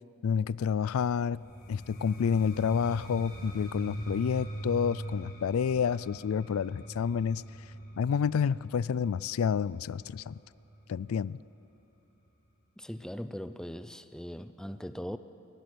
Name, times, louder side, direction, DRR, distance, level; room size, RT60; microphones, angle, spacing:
voice 1, 0.2-1.4 1.7-7.4 8.0-10.4 10.9-11.4, left 7 dB, 85° left, 20 dB, 0.4 m, -29 dB
sound 1, 1.3-11.1, right 1 dB, 45° left, 4.5 m, -42 dB
voice 2, 12.8-15.2, equal, 5° left, 11 dB, 0.5 m, -40 dB
21.5 x 19.5 x 6.2 m, 2.9 s
head